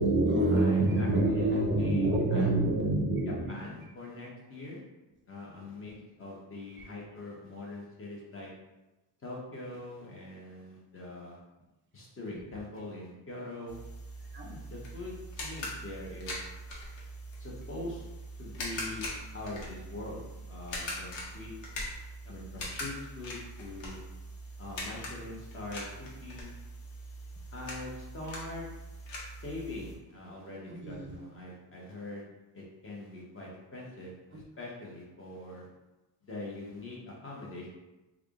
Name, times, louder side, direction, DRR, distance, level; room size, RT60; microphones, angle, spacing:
voice 1, 0.0-3.6 5.8-6.0 6.8-6.9 14.3-14.5 30.7-31.2 34.3-34.4, right 2 dB, 25° right, -1 dB, 0.6 m, -27 dB
voice 2, 0.5-2.5 3.5-4.8 5.3-8.5 9.2-11.4 11.9-13.8 14.4-16.4 17.4-18.0 18.4-19.1 19.3-21.5 22.2-24.0 24.6-26.5 27.5-28.7 29.4-32.2 32.5-35.7 36.2-37.7, left 2 dB, 30° left, -4 dB, 1.0 m, -43 dB
sound 1, 13.7-30.0, equal, 85° left, 1.0 m, -42 dB
3.5 x 2.4 x 3.6 m, 1.0 s
cardioid pair, 140°, 44 cm